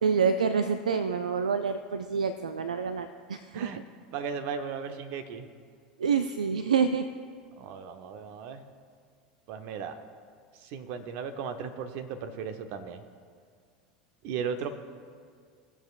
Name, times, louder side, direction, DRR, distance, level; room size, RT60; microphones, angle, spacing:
voice 1, 0.0-3.7 6.0-7.1, right 6 dB, 85° right, 11 dB, 0.3 m, -27 dB
voice 2, 4.1-5.5 7.6-8.6 9.5-10.0 10.6-13.0 14.2-14.7, right 6 dB, 55° right, 8 dB, 0.9 m, -36 dB
20.5 x 7.4 x 2.5 m, 2.1 s
hypercardioid pair, 80°, 4 cm